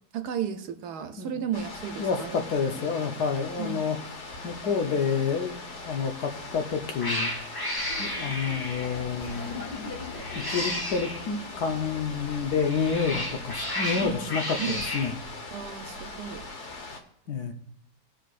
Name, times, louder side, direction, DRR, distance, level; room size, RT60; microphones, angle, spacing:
voice 1, 0.1-2.8 3.6-3.8 14.0-14.3 14.6-14.8 15.5-16.8, right 7 dB, 75° right, 8 dB, 1.3 m, -34 dB
sound 1, 1.5-17.0, left 3 dB, 50° left, 1.3 m, -41 dB
voice 2, 2.0-4.0 4.4-5.6 5.9-7.3 8.0-9.6 10.3-15.1 17.3-17.5, left 5 dB, 70° left, 4 dB, 1.5 m, -29 dB
Cat, 6.3-6.6 7.0-9.0 10.1-11.2 12.5-15.1, left 1 dB, 20° left, 0.8 m, -32 dB
Laughter, 7.8-13.6, left 3 dB, 90° left, 2.4 m, -42 dB
19.0 x 6.4 x 2.5 m, 0.76 s
omnidirectional pair, 1.8 m